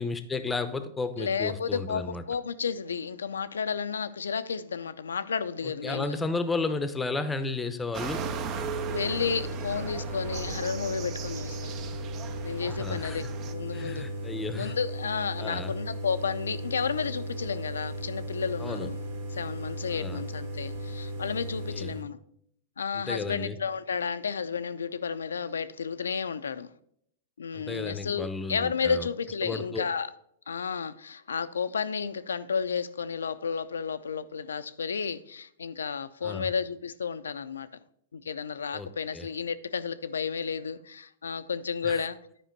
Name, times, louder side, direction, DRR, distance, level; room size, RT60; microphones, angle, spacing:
voice 1, 0.0-2.2 5.8-8.2 12.6-13.2 13.7-14.7 15.4-15.8 18.6-18.9 19.9-20.2 21.7-22.0 22.9-23.6 27.5-29.1 29.4-29.8 36.2-36.5 38.7-39.3 41.8-42.1, left 3 dB, 10° left, 0.7 m, -33 dB
voice 2, 1.2-6.2 8.9-11.7 12.4-13.2 13.5-14.1 14.5-19.0 19.3-22.2 22.8-26.7 27.4-30.1 30.5-37.7 38.1-42.2, left 6 dB, 90° left, 0.5 m, -32 dB
sound 1, 7.9-13.5, right 8 dB, 35° right, 0.6 m, -38 dB
sound 2, 8.1-22.0, right 1 dB, 70° right, 2.5 m, -36 dB
10.0 x 5.0 x 4.5 m
hypercardioid pair, 120°, 0 cm